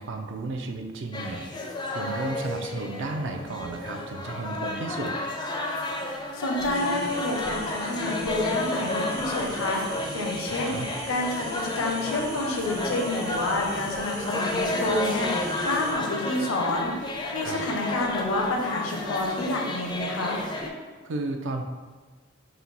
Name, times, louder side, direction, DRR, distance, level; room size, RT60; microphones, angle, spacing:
voice 1, 0.0-5.1 10.5-10.9 17.4-17.6 21.0-21.6, right 3 dB, 65° right, 4 dB, 0.4 m, -33 dB
sound 1, 1.1-20.7, left 2 dB, 20° left, 0.4 m, -32 dB
voice 2, 6.3-10.8 11.1-20.4, left 2 dB, 80° left, 1 dB, 0.6 m, -29 dB
sound 2, 6.7-15.9, right 2 dB, 90° right, 1.0 m, -41 dB
4.3 x 2.2 x 3.9 m, 1.4 s
head